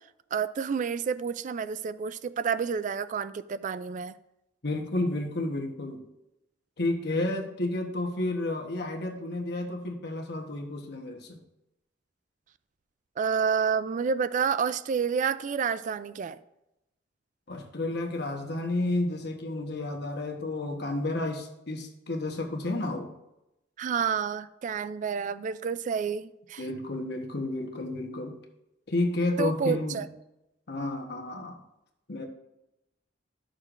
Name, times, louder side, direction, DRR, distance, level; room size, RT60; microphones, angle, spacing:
voice 1, 0.3-4.1 13.2-16.4 23.8-26.6 29.4-30.1, right 6 dB, 45° right, 0.3 m, -29 dB
voice 2, 4.6-6.0 6.8-11.4 17.5-23.1 26.6-28.4 28.9-30.0 30.7-31.6 32.1-32.3, left 2 dB, 65° left, 1.1 m, -31 dB
11.5 x 6.4 x 2.5 m
head